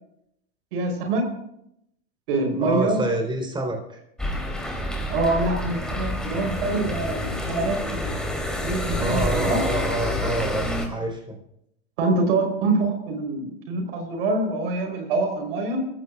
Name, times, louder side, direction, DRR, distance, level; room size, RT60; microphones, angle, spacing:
voice 1, 0.7-1.2 2.3-3.0 5.1-8.1 8.6-9.6 12.0-15.9, right 2 dB, 70° right, 3 dB, 4.2 m, -25 dB
voice 2, 2.6-4.0 9.0-11.4, right 2 dB, 15° right, 3 dB, 4.1 m, -27 dB
sound 1, 4.2-10.9, left 1 dB, ahead, 3.3 m, -28 dB
24.0 x 15.5 x 2.5 m, 0.77 s
hypercardioid pair, 95°, 30 cm